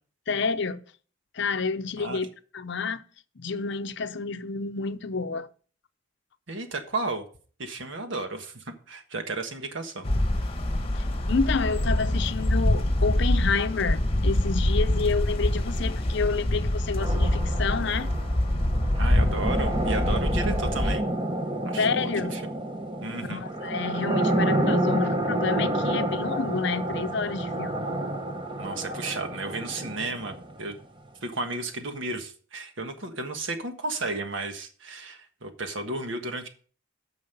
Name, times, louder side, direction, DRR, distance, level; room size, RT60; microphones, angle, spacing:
voice 1, 0.3-0.8 1.3-2.3 2.5-3.0 3.4-5.5 10.9-18.1 21.8-22.3 23.3-28.0, left 4 dB, 60° left, 0.6 m, -29 dB
voice 2, 2.0-2.3 6.5-7.2 7.6-10.1 18.9-21.0 21.6-22.4 23.0-23.5 28.6-30.8 31.2-36.5, right 2 dB, 70° right, 1.4 m, -33 dB
sound 1, 10.0-21.0, left 1 dB, 30° left, 1.1 m, -25 dB
sound 2, 17.0-30.8, right 1 dB, 25° right, 1.0 m, -29 dB
9.5 x 6.3 x 5.3 m
head